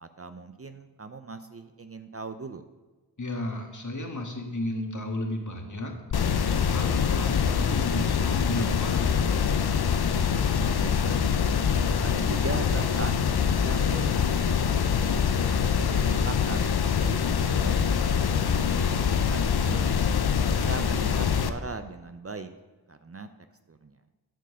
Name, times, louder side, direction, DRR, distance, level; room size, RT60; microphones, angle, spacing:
voice 1, 0.0-2.6 10.6-11.3 12.0-14.8 15.4-17.9 19.1-19.9 20.4-22.5 22.9-23.3 23.7-24.0, right 4 dB, 35° right, 9 dB, 0.6 m, -39 dB
voice 2, 3.2-5.9 6.4-9.1 18.5-19.1, left 1 dB, 45° left, 2 dB, 1.7 m, -34 dB
sound 1, 6.1-21.5, left 7 dB, 65° left, 0.6 m, -24 dB
10.5 x 4.6 x 6.4 m, 1.2 s
cardioid pair, 45°, 41 cm